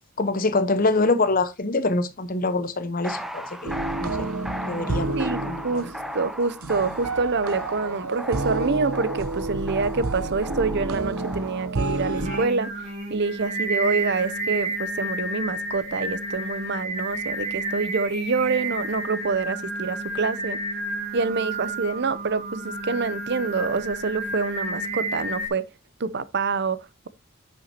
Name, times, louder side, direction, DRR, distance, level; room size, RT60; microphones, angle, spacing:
voice 1, 0.2-3.7 4.0-4.3 4.7-5.2 5.5-5.9, left 3 dB, 40° left, 0.9 m, -24 dB
sound 1, 3.0-11.7, equal, ahead, 0.6 m, -37 dB
sound 2, 3.6-12.4, right 2 dB, 80° right, 0.9 m, -30 dB
voice 2, 5.1-12.7 13.1-20.6 21.1-25.7 26.0-27.1, right 4 dB, 50° right, 0.7 m, -26 dB
Singing, 12.2-25.5, right 2 dB, 35° right, 3.0 m, -31 dB
10.0 x 7.0 x 2.8 m
head